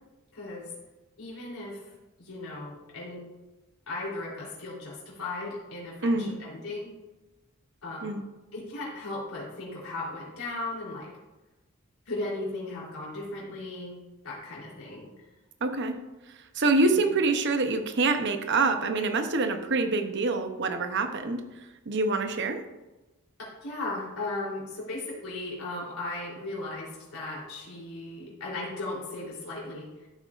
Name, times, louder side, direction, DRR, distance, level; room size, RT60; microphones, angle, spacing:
voice 1, 0.3-0.7 1.2-1.8 2.2-3.2 3.9-6.9 7.8-8.2 8.5-11.1 12.1-14.0 14.2-15.1 16.9-17.0 23.6-29.9, left 2 dB, 80° left, -5 dB, 3.5 m, -36 dB
voice 2, 6.0-6.4 8.0-8.2 15.6-16.0 16.5-21.4 21.9-22.6, right 3 dB, 55° right, 7 dB, 0.8 m, -26 dB
13.5 x 7.7 x 2.5 m, 1.1 s
head